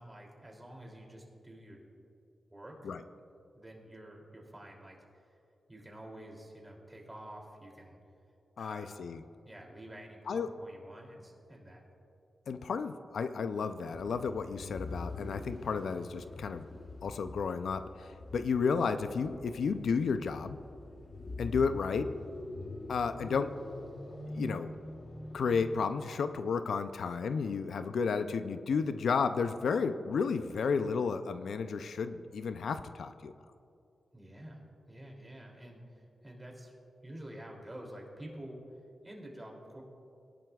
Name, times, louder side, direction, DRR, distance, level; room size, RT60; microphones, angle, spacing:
voice 1, 0.0-1.8 2.5-2.8 3.6-5.2 5.7-8.0 8.6-9.0 9.5-11.8 34.1-36.7 37.0-38.6 39.0-39.8, right 1 dB, 15° right, 0 dB, 2.7 m, -49 dB
voice 2, 8.6-9.2 10.3-10.5 12.5-16.7 17.0-20.6 21.4-22.1 22.9-23.5 24.3-24.7 25.3-33.3, left 5 dB, 80° left, 10 dB, 0.4 m, -32 dB
sound 1, 13.9-26.1, left 2 dB, 45° left, 1.3 m, -45 dB
19.0 x 11.0 x 2.3 m, 2.6 s
cardioid pair, 60°, 0 cm